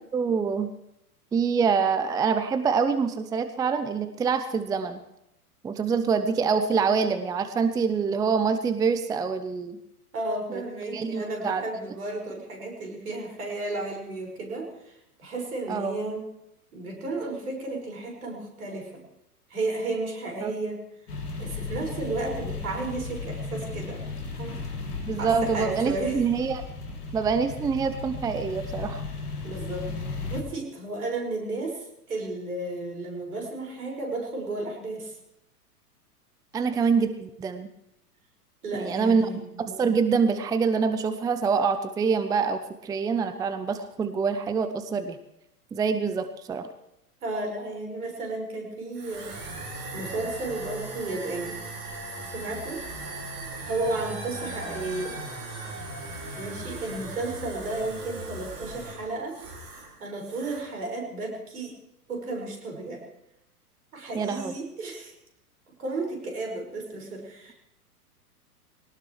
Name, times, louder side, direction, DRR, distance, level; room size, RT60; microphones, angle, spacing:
voice 1, 0.1-0.7 1.3-5.0 5.6-9.8 10.5-10.6 10.9-11.6 15.7-16.1 20.4-20.5 25.1-26.6 27.1-29.0 36.5-37.7 38.7-39.3 39.7-45.2 45.7-46.7 64.1-64.5, right 5 dB, 10° right, 10 dB, 0.6 m, -25 dB
voice 2, 10.1-16.3 16.7-19.0 19.5-20.8 21.4-24.0 24.4-24.6 25.2-26.2 29.4-29.9 30.3-35.2 38.6-39.4 47.2-49.3 49.9-51.6 52.2-52.8 53.6-55.2 56.4-59.4 60.0-61.8 62.1-63.1 63.9-65.1 65.8-67.5, right 2 dB, 70° right, 1 dB, 5.8 m, -33 dB
sound 1, 21.1-30.4, left 3 dB, 75° left, 3.3 m, -35 dB
sound 2, 48.9-59.9 60.2-60.7, right 2 dB, 45° right, 6.4 m, -38 dB
23.0 x 18.5 x 3.2 m, 0.83 s
figure-of-eight pair, 100°, 46 cm